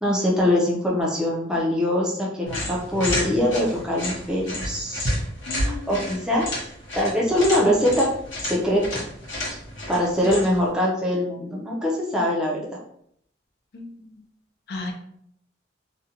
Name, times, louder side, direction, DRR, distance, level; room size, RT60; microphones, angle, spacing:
voice 1, 0.0-5.2 5.6-6.5 6.9-8.1 8.4-9.0 9.9-12.8, left 1 dB, 5° right, -4 dB, 0.4 m, -23 dB
sound 1, 2.5-10.7, left 1 dB, 90° left, 0.9 m, -31 dB
voice 2, 5.5-6.1 13.7-14.1 14.7-14.9, left 3 dB, 60° left, 3 dB, 0.5 m, -35 dB
2.5 x 2.1 x 2.8 m, 0.68 s
head